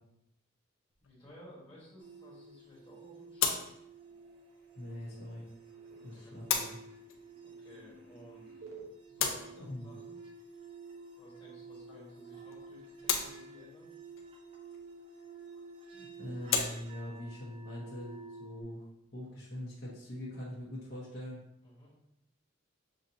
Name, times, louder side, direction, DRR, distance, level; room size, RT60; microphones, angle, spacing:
sound 1, 0.9-20.2, left 6 dB, 85° left, 0.6 m, -40 dB
voice 1, 1.0-3.6 5.9-6.4 7.4-10.2 11.2-13.9 21.6-21.9, equal, 25° left, -7 dB, 1.5 m, -56 dB
sound 2, 2.0-18.6, right 4 dB, 25° right, 0.5 m, -51 dB
sound 3, 3.2-3.5 3.7-8.9, right 5 dB, 85° right, 1.1 m, -57 dB
voice 2, 4.7-5.4 6.0-6.6 9.6-9.9 16.0-18.1 18.4-21.4, left 1 dB, 50° left, -6 dB, 1.0 m, -43 dB
6.6 x 2.7 x 2.7 m, 0.81 s
head